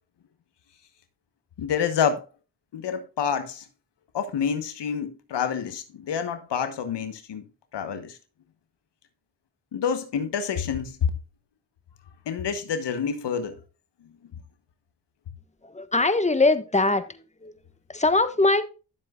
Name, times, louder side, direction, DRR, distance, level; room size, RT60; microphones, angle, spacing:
voice 1, 1.6-2.2 2.7-3.6 4.1-7.4 7.7-8.2 9.7-10.9 12.3-13.5, left 7 dB, 75° left, 1.2 m, -28 dB
voice 2, 15.6-17.5 17.9-18.6, left 2 dB, 15° left, 1.3 m, -22 dB
12.0 x 7.6 x 2.4 m
supercardioid pair, 40°, 42 cm